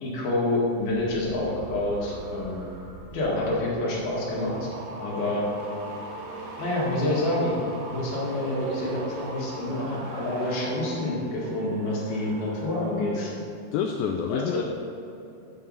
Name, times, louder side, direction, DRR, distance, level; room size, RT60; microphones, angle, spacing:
voice 1, 0.0-2.7 3.1-4.7 5.0-5.5 6.6-7.5 7.9-13.3 14.3-14.6, left 1 dB, 70° left, -5 dB, 3.4 m, -27 dB
sound 1, 0.7-13.4 13.7-14.1, right 2 dB, 80° right, 3.4 m, -40 dB
voice 2, 13.7-14.6, left 7 dB, 85° left, 3 dB, 2.1 m, -27 dB
8.4 x 5.7 x 5.4 m, 2.8 s
omnidirectional pair, 4.7 m